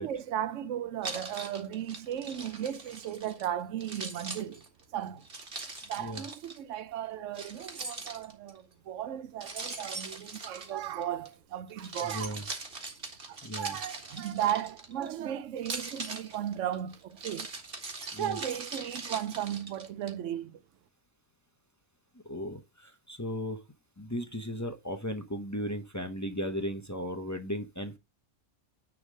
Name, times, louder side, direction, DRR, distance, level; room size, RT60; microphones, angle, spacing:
voice 1, 0.0-4.6 4.9-5.2 5.9-12.4 13.3-17.5 18.2-20.6, right 10 dB, 90° right, 1.0 m, -35 dB
Keys jangling, 1.0-3.5 3.8-6.6 7.3-8.6 9.4-11.3 11.7-15.1 15.6-20.1, right 3 dB, 50° right, 1.9 m, -41 dB
voice 2, 12.0-12.4 13.4-13.8 18.1-18.4 22.2-23.6 24.0-28.0, equal, 20° left, 0.7 m, -36 dB
9.9 x 3.6 x 6.3 m
omnidirectional pair, 1.2 m